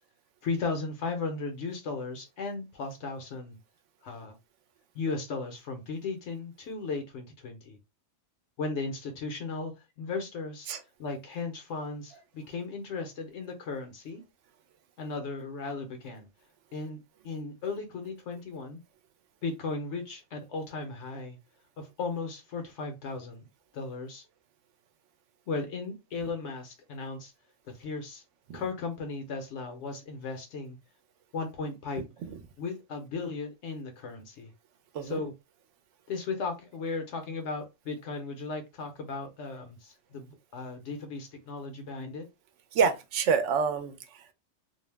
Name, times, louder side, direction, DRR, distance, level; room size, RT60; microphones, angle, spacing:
voice 1, 0.4-3.6 4.0-4.4 4.9-7.8 8.6-10.7 11.0-14.2 15.0-16.3 16.7-17.0 17.2-18.8 19.4-21.4 21.8-23.5 23.7-24.2 25.5-27.3 27.7-28.2 28.5-30.8 31.3-32.1 32.6-34.5 35.0-35.3 36.1-42.3, left 4 dB, 75° left, 0.9 m, -36 dB
voice 2, 42.7-44.3, right 6 dB, 80° right, 0.9 m, -27 dB
2.5 x 2.0 x 3.2 m
omnidirectional pair, 1.2 m